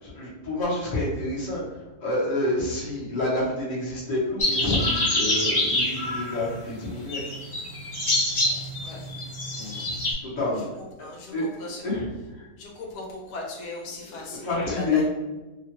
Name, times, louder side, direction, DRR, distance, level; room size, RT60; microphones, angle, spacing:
voice 1, 0.0-1.6 2.0-7.2 9.6-9.8 10.2-10.6 11.3-11.4 11.8-12.1 12.3-12.5 14.1-15.1, left 2 dB, 35° left, -6 dB, 0.8 m, -28 dB
sound 1, 4.4-6.6 7.1-10.1, left 1 dB, 50° left, 0.4 m, -26 dB
voice 2, 11.0-11.8 12.6-15.1, left 2 dB, 80° left, -1 dB, 1.2 m, -38 dB
2.9 x 2.3 x 2.9 m, 1.1 s
omnidirectional pair, 1.7 m